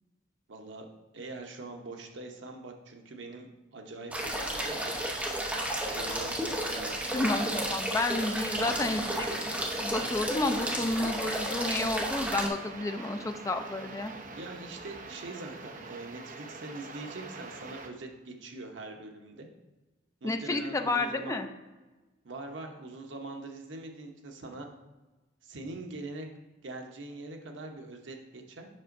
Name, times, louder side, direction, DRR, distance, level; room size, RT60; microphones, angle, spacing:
voice 1, 0.5-0.9 1.1-3.5 3.7-5.0 5.9-7.5 8.6-9.2 14.3-19.5 20.2-21.4 22.2-24.7 25.4-26.3 26.6-28.7, right 2 dB, 90° right, 3 dB, 0.9 m, -43 dB
sound 1, 4.1-12.5, right 1 dB, 10° right, 0.9 m, -32 dB
sound 2, 4.5-17.9, right 3 dB, 45° right, 0.6 m, -45 dB
voice 2, 7.1-14.1 20.2-21.5, left 2 dB, 15° left, 6 dB, 0.4 m, -31 dB
7.5 x 5.8 x 2.6 m, 1.2 s
head